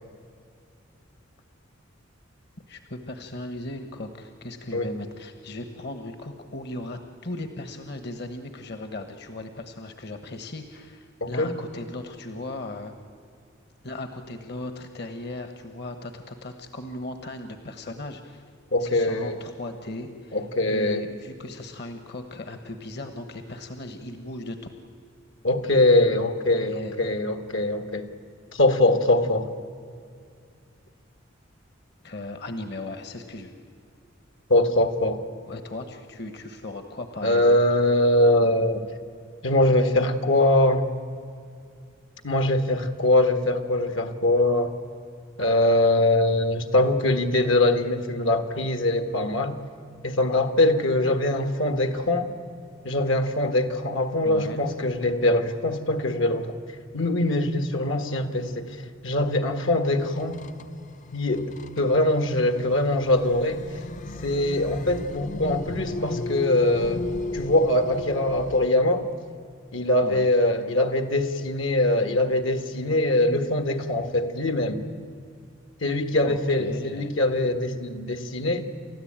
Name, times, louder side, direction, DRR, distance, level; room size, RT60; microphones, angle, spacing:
voice 1, 2.7-12.9 13.8-18.4 18.8-20.4 20.7-24.6 26.7-27.0 32.0-33.5 35.5-37.6 54.2-54.6 70.0-70.3 76.2-77.1, left 2 dB, 55° left, 8 dB, 1.2 m, -37 dB
voice 2, 11.2-11.5 18.7-19.4 20.3-21.0 25.4-28.1 28.5-29.5 34.5-35.2 37.2-38.8 39.4-40.9 42.2-44.7 45.4-49.6 50.0-52.3 52.8-56.6 56.9-60.4 61.1-63.6 64.2-67.0 67.3-69.1 69.7-74.8 75.8-78.6, left 1 dB, 80° left, 7 dB, 1.6 m, -22 dB
sound 1, 60.0-68.7, left 2 dB, 40° left, 0.6 m, -35 dB
29.5 x 13.5 x 8.8 m, 2.3 s
head